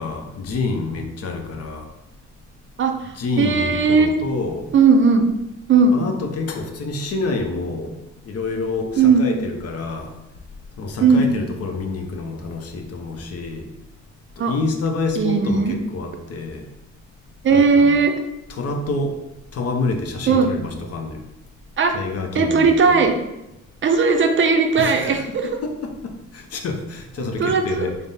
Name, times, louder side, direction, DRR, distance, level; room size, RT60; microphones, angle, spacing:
voice 1, 0.0-1.9 3.1-4.7 5.9-8.0 8.3-10.1 10.8-13.7 14.4-16.7 17.5-18.0 18.5-19.2 19.5-21.2 21.9-23.1 24.8-28.0, left 3 dB, 55° left, 4 dB, 0.6 m, -27 dB
voice 2, 2.8-4.1 4.7-5.2 5.7-6.0 9.0-9.3 11.0-11.3 14.4-14.5 15.2-15.7 17.4-18.1 20.3-20.5 21.8-21.9 22.3-23.1 23.8-25.5 27.4-27.9, right 4 dB, 40° right, 4 dB, 0.5 m, -17 dB
3.4 x 2.1 x 3.9 m, 0.91 s
cardioid pair, 90°, 30 cm